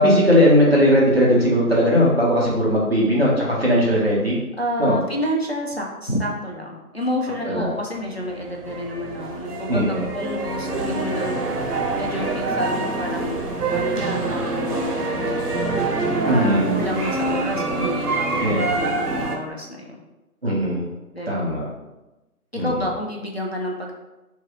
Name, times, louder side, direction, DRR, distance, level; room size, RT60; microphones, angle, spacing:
voice 1, 0.0-4.4 4.8-4.9 7.5-7.7 9.7-10.0 16.3-16.8 18.4-18.7 20.4-20.8 21.3-21.7 22.5-22.7, equal, 40° right, -5 dB, 0.9 m, -18 dB
voice 2, 4.6-11.4 11.9-13.4 13.7-15.3 16.2-20.0 21.1-21.4 22.5-23.9, equal, 45° left, -1 dB, 0.5 m, -29 dB
sound 1, 7.9-19.4, right 2 dB, 90° right, 0.8 m, -25 dB
3.1 x 2.6 x 3.9 m, 1.0 s
figure-of-eight pair, 165°, 45 cm